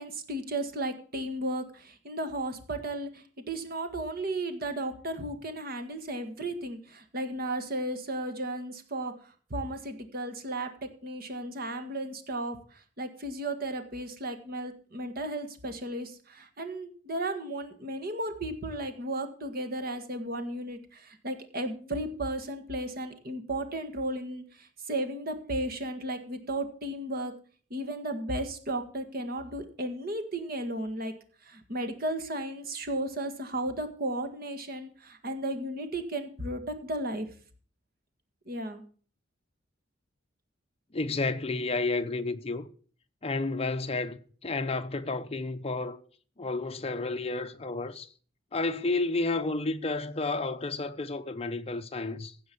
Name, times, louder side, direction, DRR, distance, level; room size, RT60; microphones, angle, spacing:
voice 1, 0.0-27.3 27.7-31.1 31.4-37.3 38.5-38.8, right 1 dB, 50° right, 1.7 m, -34 dB
voice 2, 40.9-42.7 43.2-46.0 46.4-48.1 48.5-52.3, left 3 dB, 30° left, 0.8 m, -31 dB
16.0 x 5.5 x 6.9 m
head